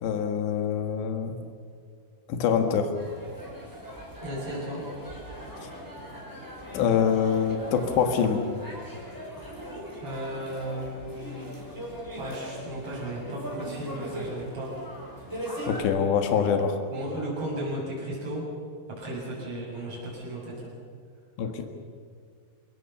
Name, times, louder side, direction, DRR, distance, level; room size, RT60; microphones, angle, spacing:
voice 1, 0.0-1.4 2.3-2.9 5.6-5.7 6.7-8.5 15.7-16.8 21.4-21.7, left 7 dB, 90° left, 5 dB, 3.9 m, -25 dB
sound 1, 2.9-15.8, equal, 5° right, 5.8 m, -40 dB
voice 2, 4.2-4.8 10.0-11.4 12.2-14.7 16.9-18.4 18.9-20.7, right 1 dB, 35° right, -6 dB, 7.8 m, -35 dB
28.5 x 18.5 x 7.2 m, 2.1 s
omnidirectional pair, 4.8 m